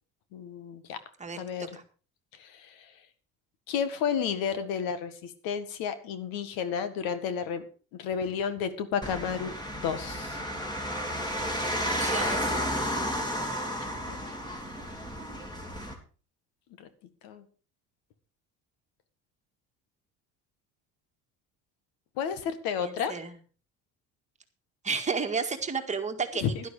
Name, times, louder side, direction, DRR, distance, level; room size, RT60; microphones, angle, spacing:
voice 1, 0.3-1.0 1.3-1.7 2.4-2.8 3.7-7.6 8.0-9.5 9.8-10.4 14.1-14.2 16.8-16.9 17.2-17.4 22.2-23.1 26.4-26.6, left 7 dB, 85° left, 11 dB, 1.8 m, -31 dB
voice 2, 1.2-1.8 12.0-12.5 22.8-23.3 24.8-26.7, right 5 dB, 20° right, 5 dB, 1.9 m, -32 dB
sound 1, 9.0-15.9, equal, 10° left, 3.2 m, -32 dB
11.5 x 11.0 x 4.9 m, 0.38 s
cardioid pair, 120°, 34 cm